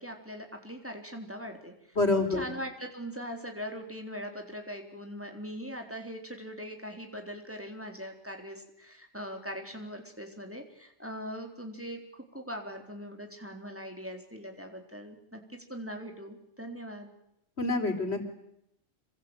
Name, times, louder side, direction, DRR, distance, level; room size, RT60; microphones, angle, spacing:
voice 1, 0.0-2.0 2.3-17.1, equal, 10° right, 3 dB, 3.9 m, -41 dB
voice 2, 1.9-2.4 17.6-18.2, left 2 dB, 60° left, 6 dB, 4.6 m, -27 dB
27.5 x 23.0 x 9.1 m, 0.79 s
omnidirectional pair, 1.2 m